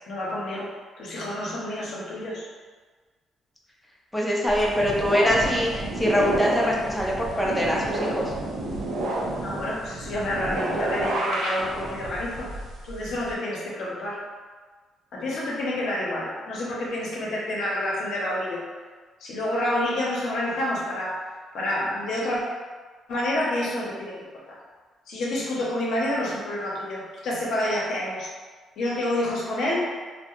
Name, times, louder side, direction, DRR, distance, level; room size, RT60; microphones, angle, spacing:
voice 1, 0.1-2.5 9.4-12.5 12.8-14.2 15.1-18.6 19.2-21.2 21.5-22.4 23.1-24.2 24.5-24.6 25.1-28.3 28.8-29.9, left 1 dB, 75° left, -5 dB, 0.7 m, -28 dB
voice 2, 4.1-8.3, equal, 5° left, -4 dB, 0.5 m, -23 dB
sound 1, 4.5-13.3, right 2 dB, 80° right, 0.5 m, -30 dB
2.2 x 2.0 x 2.9 m, 1.4 s
cardioid pair, 90°, 0 cm